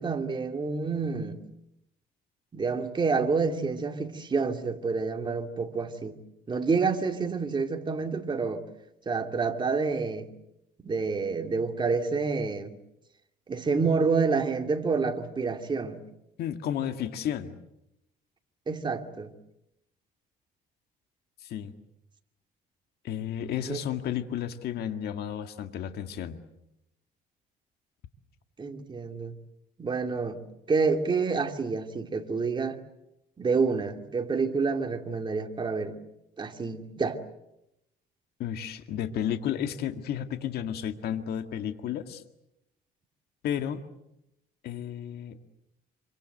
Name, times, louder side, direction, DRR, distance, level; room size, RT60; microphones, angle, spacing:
voice 1, 0.0-1.4 2.5-6.2 6.5-8.6 9.1-10.3 10.8-12.7 13.5-16.0 18.7-19.3 23.6-23.8 28.6-29.3 29.8-30.4 30.7-32.8 33.4-36.0 36.4-37.2, right 4 dB, 25° right, 4 dB, 2.7 m, -28 dB
voice 2, 16.4-17.6 21.4-21.7 23.0-26.4 38.4-42.2 43.4-43.8 44.6-45.4, left 9 dB, 70° left, 7 dB, 2.0 m, -32 dB
26.0 x 24.5 x 8.0 m, 0.85 s
cardioid pair, 110°, 17 cm